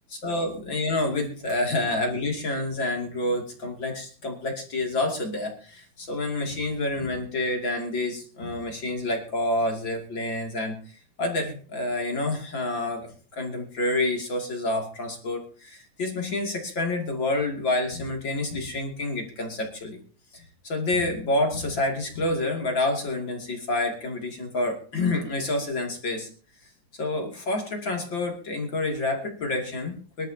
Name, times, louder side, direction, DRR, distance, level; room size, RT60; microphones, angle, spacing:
voice 1, 0.1-20.0 20.3-26.3 27.0-30.3, left 2 dB, 35° left, 1 dB, 2.1 m, -28 dB
25.0 x 12.5 x 2.8 m, 0.40 s
omnidirectional pair, 5.7 m